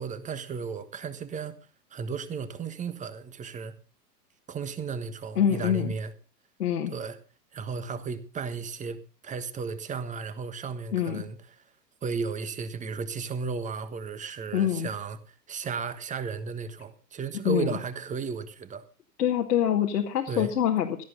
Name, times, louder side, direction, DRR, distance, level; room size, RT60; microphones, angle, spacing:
voice 1, 0.0-1.6 1.9-3.7 4.5-6.1 6.9-7.2 7.5-11.4 12.0-15.2 15.5-18.8 20.3-20.5, right 5 dB, 15° right, 1.3 m, -34 dB
voice 2, 5.4-5.9 6.6-6.9 10.9-11.2 14.5-14.9 17.4-17.8 19.2-21.0, left 9 dB, 65° left, 2.2 m, -25 dB
17.0 x 13.0 x 4.0 m
figure-of-eight pair, 110°, 50 cm